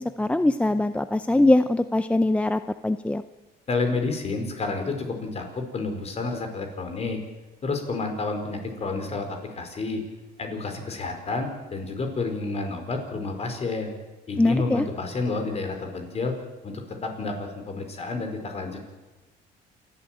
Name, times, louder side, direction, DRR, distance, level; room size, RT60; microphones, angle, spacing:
voice 1, 0.0-3.2 14.4-14.9, left 2 dB, 5° left, 11 dB, 0.6 m, -22 dB
voice 2, 3.7-7.2 7.6-10.0 10.4-13.9 14.3-16.3 16.6-18.9, left 3 dB, 40° left, 5 dB, 4.8 m, -30 dB
28.5 x 12.5 x 9.2 m, 1.2 s
cardioid pair, 110°, 17 cm